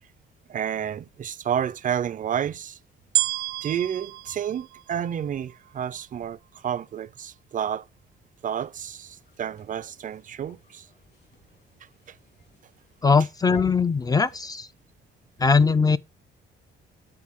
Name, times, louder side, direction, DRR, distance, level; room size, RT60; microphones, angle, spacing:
voice 1, 0.5-2.8 3.6-7.9 8.4-10.9 12.1-12.2, right 9 dB, 40° right, 0.5 m, -30 dB
sound 1, 3.1-5.5 6.2-6.3, right 17 dB, 85° right, 0.6 m, -29 dB
sound 2, 8.5-14.6, left 4 dB, 55° left, 3.6 m, -56 dB
voice 2, 13.0-14.7 15.4-16.0, left 5 dB, 20° left, 0.3 m, -20 dB
9.6 x 4.0 x 3.6 m
cardioid pair, 90°, 20 cm